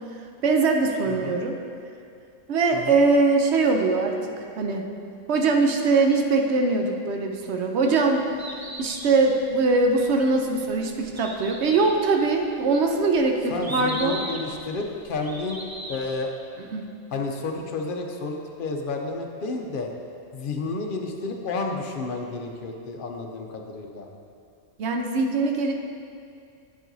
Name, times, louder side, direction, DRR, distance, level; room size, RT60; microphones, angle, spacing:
voice 1, 0.4-1.6 2.5-4.8 5.3-8.2 8.8-14.2 16.7-16.9 24.8-25.7, right 3 dB, 65° right, 3 dB, 0.8 m, -22 dB
voice 2, 1.1-1.4 2.7-2.9 13.5-15.6 15.9-16.3 17.1-19.9 20.3-24.1, left 3 dB, 55° left, 2 dB, 0.7 m, -31 dB
Bird, 8.2-16.2, right 1 dB, 25° right, 0.5 m, -39 dB
9.2 x 7.4 x 2.7 m, 2.4 s
omnidirectional pair, 1.4 m